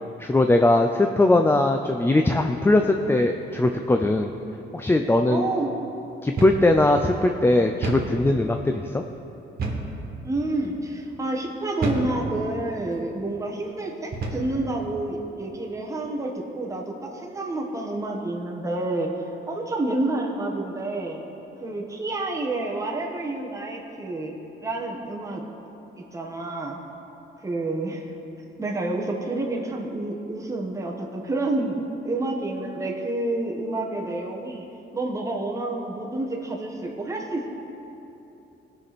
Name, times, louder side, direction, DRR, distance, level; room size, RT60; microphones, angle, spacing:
voice 1, 0.2-4.3 4.7-5.5 6.2-9.0, left 2 dB, 10° left, 5 dB, 0.4 m, -20 dB
voice 2, 5.3-5.8 10.2-21.2 21.6-24.3 24.6-25.4 26.1-26.8 27.4-28.0 28.6-34.7 34.9-37.5, right 2 dB, 15° right, -1 dB, 1.2 m, -29 dB
sound 1, 6.4-6.7 7.0-7.1 7.8-8.1 9.6-9.9 10.6-10.8 11.8-12.1 12.9-13.1 14.1-14.5, right 3 dB, 50° right, 1.8 m, -29 dB
17.5 x 6.0 x 4.2 m, 2.9 s
cardioid pair, 90°, 20 cm